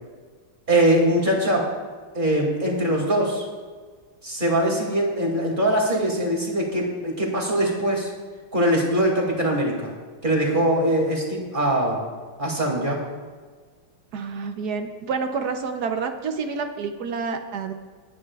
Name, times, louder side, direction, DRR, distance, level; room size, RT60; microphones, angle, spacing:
voice 1, 0.7-1.7 2.1-3.4 4.2-8.1 8.5-9.9 10.2-12.0 12.4-13.0, right 1 dB, 25° right, -2 dB, 2.5 m, -22 dB
voice 2, 14.1-17.7, right 5 dB, 65° right, 6 dB, 1.1 m, -28 dB
20.5 x 9.9 x 2.4 m, 1.5 s
omnidirectional pair, 2.3 m